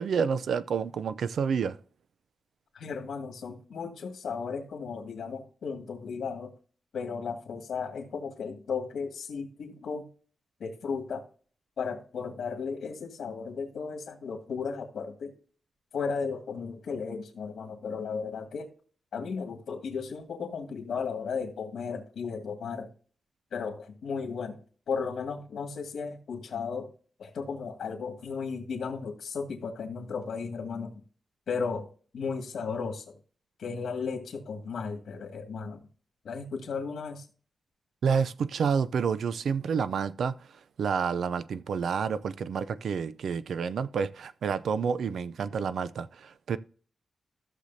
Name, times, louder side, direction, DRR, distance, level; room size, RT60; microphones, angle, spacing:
voice 1, 0.0-1.8 38.0-40.4 40.8-46.6, right 6 dB, 75° right, 0.5 m, -29 dB
voice 2, 2.8-6.5 6.9-10.1 10.6-11.2 11.8-15.3 15.9-18.7 19.1-22.9 23.5-24.6 24.9-26.9 27.2-30.9 31.5-33.2 33.6-35.8 36.2-37.3, left 5 dB, 80° left, 2.0 m, -35 dB
15.0 x 6.7 x 2.7 m
wide cardioid pair, 175°, 0 cm